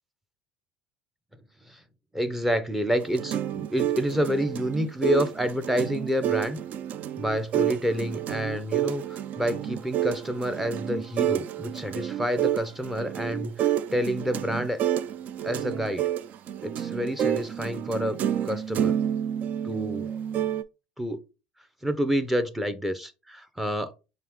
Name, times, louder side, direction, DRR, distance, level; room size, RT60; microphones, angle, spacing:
voice 1, 2.1-6.6 7.2-14.8 15.4-16.1 16.6-19.0 19.6-20.1 21.0-21.2 21.8-23.9, equal, 5° right, 0.7 m, -28 dB
sound 1, 2.9-20.6, right 10 dB, 50° right, 0.3 m, -29 dB
4.7 x 2.8 x 3.6 m
supercardioid pair, 100°, 4 cm